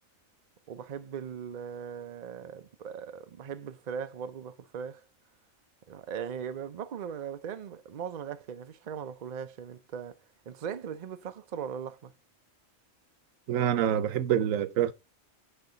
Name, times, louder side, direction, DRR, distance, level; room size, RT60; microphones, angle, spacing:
voice 1, 0.7-5.0 5.9-10.2 10.5-12.1, right 7 dB, 50° right, 0.5 m, -39 dB
voice 2, 13.5-14.9, right 10 dB, 90° right, 1.1 m, -26 dB
10.0 x 3.4 x 3.8 m
omnidirectional pair, 1.3 m